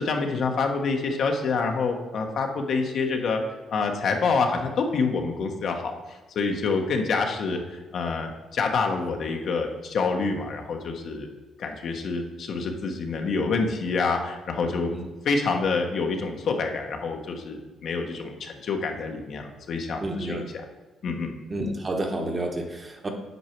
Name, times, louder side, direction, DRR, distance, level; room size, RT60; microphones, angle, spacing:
voice 1, 0.0-3.4 3.7-11.3 11.6-14.9 15.2-20.4 21.0-21.3, left 4 dB, 65° left, 3 dB, 1.0 m, -27 dB
voice 2, 20.0-20.5 21.5-23.1, right 1 dB, 30° right, 3 dB, 1.2 m, -30 dB
8.2 x 4.7 x 4.5 m, 1.2 s
cardioid pair, 90°, 0 cm